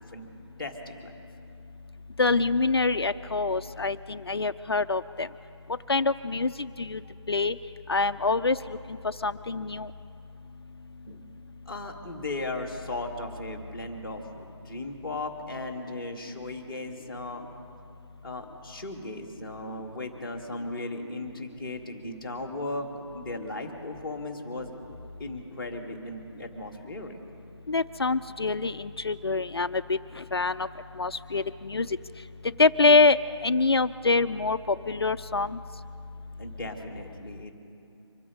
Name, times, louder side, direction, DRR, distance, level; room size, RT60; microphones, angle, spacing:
voice 1, 0.6-1.1 11.0-11.2 11.6-17.4 18.2-22.9 23.1-24.7 25.2-27.2 36.4-37.5, left 2 dB, ahead, -9 dB, 1.5 m, -37 dB
voice 2, 2.2-5.3 5.9-7.0 7.3-7.6 7.9-8.6 9.0-9.9 27.7-30.7 31.0-31.9 32.6-33.2 33.4-35.6, left 3 dB, 60° left, 10 dB, 0.5 m, -25 dB
25.5 x 8.6 x 5.3 m, 2.6 s
figure-of-eight pair, 165°, 15 cm